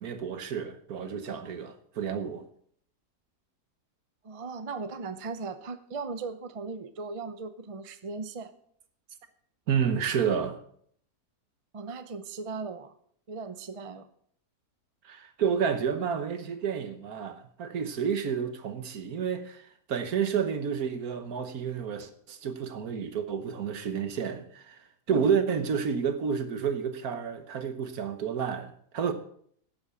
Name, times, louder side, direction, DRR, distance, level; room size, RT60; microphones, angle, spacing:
voice 1, 0.0-2.4 9.7-10.6 15.1-19.6 19.9-24.7 25.1-29.1, right 7 dB, 65° right, 1.5 m, -30 dB
voice 2, 4.2-8.5 11.7-12.9 13.3-14.1 25.1-25.3, right 4 dB, 35° right, 0.5 m, -38 dB
11.5 x 8.1 x 6.9 m
omnidirectional pair, 1.7 m